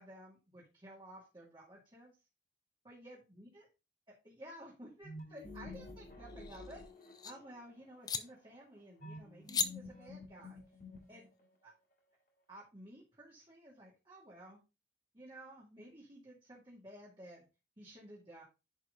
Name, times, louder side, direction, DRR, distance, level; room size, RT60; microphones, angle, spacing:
voice 1, 0.0-2.1 2.8-3.6 4.1-6.8 7.2-10.6 11.1-11.3 11.6-11.7 12.5-14.6 15.1-17.4 17.8-18.4, right 1 dB, 25° right, -5 dB, 2.4 m, -54 dB
sound 1, 5.0-7.6 9.0-11.5, left 2 dB, 55° left, 3.2 m, -50 dB
sound 2, 6.2-7.3 8.0-8.2 9.5-9.7, left 6 dB, 20° left, 0.5 m, -37 dB
10.5 x 4.7 x 3.9 m, 0.29 s
head